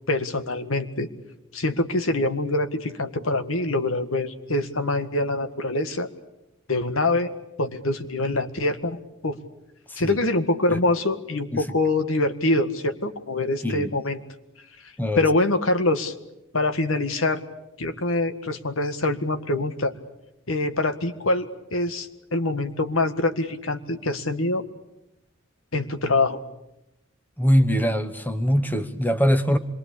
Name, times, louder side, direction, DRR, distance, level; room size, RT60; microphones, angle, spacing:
voice 1, 0.1-1.1 1.5-6.1 6.7-7.3 7.6-9.0 9.2-9.4 10.0-14.2 15.2-16.1 16.5-17.4 17.8-19.9 20.5-24.7 25.7-26.4, left 2 dB, 75° left, 9 dB, 1.9 m, -24 dB
voice 2, 27.4-29.6, equal, 10° left, 10 dB, 1.1 m, -22 dB
26.5 x 22.5 x 8.6 m, 0.88 s
head